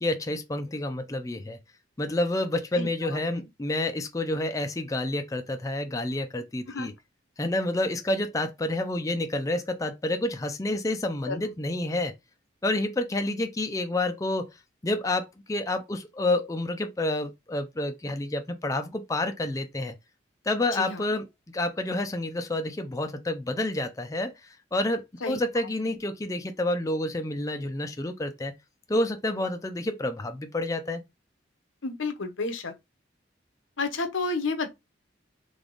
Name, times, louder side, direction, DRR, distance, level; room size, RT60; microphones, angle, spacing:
voice 1, 0.0-1.6 2.0-6.9 7.4-12.1 12.6-14.5 14.8-20.0 20.4-21.3 21.5-28.5 28.9-31.0, left 1 dB, 15° left, 0.4 m, -29 dB
voice 2, 2.7-3.4 6.7-6.9 11.3-11.4 20.7-21.1 25.2-25.4 31.8-32.7 33.8-34.7, left 3 dB, 85° left, 0.9 m, -31 dB
3.5 x 3.5 x 3.8 m
head